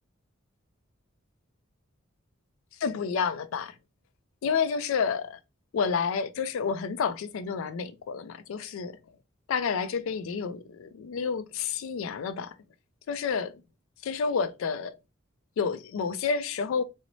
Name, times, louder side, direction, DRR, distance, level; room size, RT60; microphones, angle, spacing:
voice 1, 2.8-3.7 4.4-5.4 5.7-9.0 9.5-12.5 13.1-13.5 14.0-14.9 15.6-16.8, left 6 dB, 70° left, 0.3 m, -29 dB
2.6 x 2.0 x 3.0 m
head